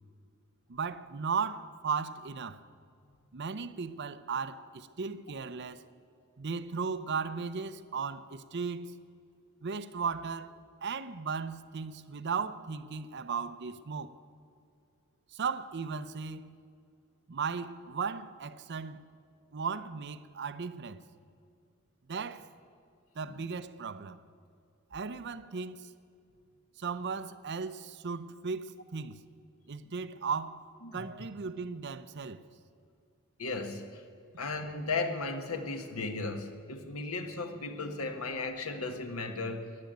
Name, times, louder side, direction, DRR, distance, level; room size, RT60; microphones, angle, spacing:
voice 1, 0.7-2.6 3.3-5.8 6.4-8.9 9.6-14.1 15.3-16.6 17.3-19.0 19.5-21.0 22.1-22.5 23.2-24.2 24.9-25.9 26.8-29.2 29.7-30.6 30.9-32.4, right 5 dB, 55° right, 0.6 m, -36 dB
voice 2, 30.8-31.2 33.4-34.0 34.4-39.7, left 3 dB, 75° left, 1.4 m, -36 dB
14.0 x 10.5 x 9.0 m
head